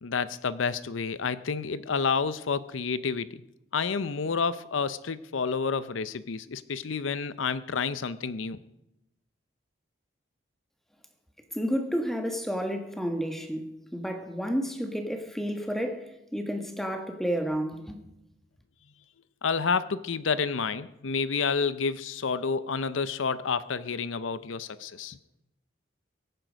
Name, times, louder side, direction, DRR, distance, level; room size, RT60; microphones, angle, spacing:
voice 1, 0.0-3.4 3.7-8.6 19.4-25.2, left 5 dB, 90° left, 0.6 m, -29 dB
voice 2, 11.5-18.0, equal, ahead, 1.4 m, -31 dB
23.5 x 9.0 x 5.1 m
head